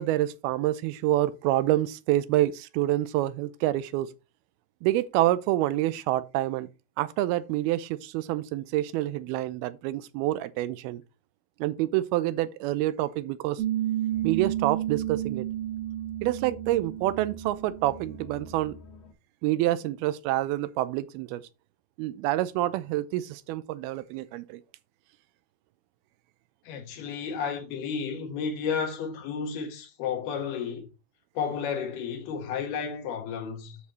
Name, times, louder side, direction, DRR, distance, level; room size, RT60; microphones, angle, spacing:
voice 1, 0.0-4.1 4.8-6.7 7.0-11.0 11.6-13.6 14.2-15.5 16.2-18.8 19.4-21.4 22.0-24.6, right 15 dB, 90° right, 2.5 m, -27 dB
Piano, 13.6-18.7, right 13 dB, 75° right, 2.7 m, -32 dB
sound 1, 14.1-19.1, left 2 dB, 60° left, 2.0 m, -49 dB
voice 2, 26.7-30.9 31.4-33.8, left 6 dB, 80° left, 3.3 m, -32 dB
8.3 x 7.1 x 3.1 m
omnidirectional pair, 4.4 m